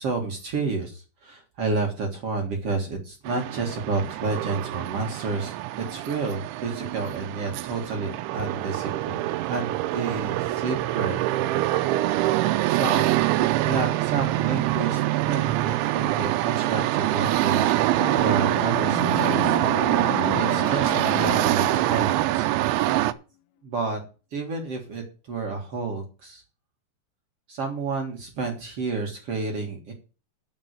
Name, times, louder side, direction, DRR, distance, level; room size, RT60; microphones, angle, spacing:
voice 1, 0.0-9.2 9.5-11.2 12.7-17.8 18.1-19.6 20.0-22.5 23.6-24.0 24.3-26.4 27.5-29.9, right 4 dB, 55° right, 2 dB, 1.7 m, -30 dB
sound 1, 3.3-23.1, right 15 dB, 80° right, 2.9 m, -24 dB
sound 2, 18.0-23.1, left 14 dB, 80° left, 3.1 m, -34 dB
9.0 x 6.4 x 8.2 m, 0.34 s
omnidirectional pair, 5.6 m